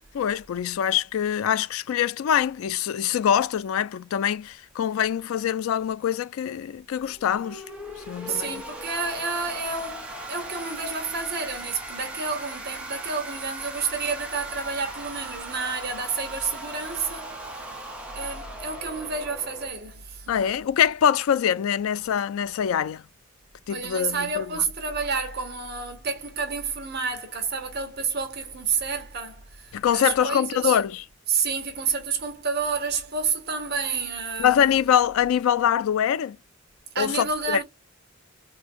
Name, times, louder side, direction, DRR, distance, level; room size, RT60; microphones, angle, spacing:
voice 1, 0.1-7.6 8.1-8.6 20.3-23.0 23.7-24.6 29.7-31.0 34.4-36.4 37.0-37.6, left 9 dB, 80° left, 0.3 m, -24 dB
sound 1, 7.1-19.7, right 1 dB, 5° right, 0.9 m, -39 dB
voice 2, 8.3-17.6 18.1-20.5 23.7-30.8 31.3-34.7 36.9-37.6, right 5 dB, 50° right, 1.2 m, -30 dB
4.3 x 2.2 x 2.5 m
head